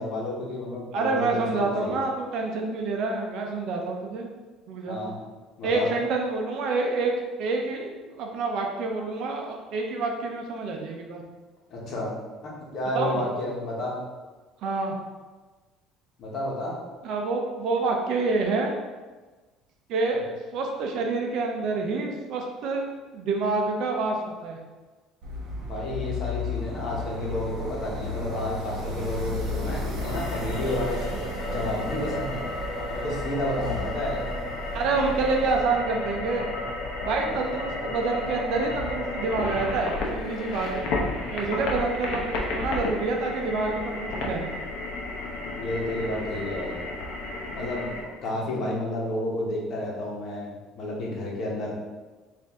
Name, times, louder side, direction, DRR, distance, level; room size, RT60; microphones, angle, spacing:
voice 1, 0.0-2.0 4.9-5.1 5.6-5.9 11.7-12.1 12.7-14.0 16.2-16.8 25.6-31.0 31.5-32.4 32.9-34.2 37.1-37.4 41.3-41.6 45.5-46.7 47.5-51.7, left 1 dB, 40° left, -4 dB, 1.1 m, -31 dB
voice 2, 0.9-4.3 4.7-5.0 5.6-7.1 7.4-11.2 12.9-13.2 14.6-15.0 17.0-18.7 19.9-22.8 23.1-24.6 34.7-36.5 37.0-40.9 41.3-44.5, right 3 dB, 55° right, 1 dB, 0.6 m, -27 dB
sound 1, 25.2-35.6, left 1 dB, 70° right, 1.2 m, -34 dB
sound 2, 30.0-48.0, left 2 dB, 70° left, 0.7 m, -32 dB
4.3 x 2.6 x 3.6 m, 1.3 s
cardioid pair, 155°, 0 cm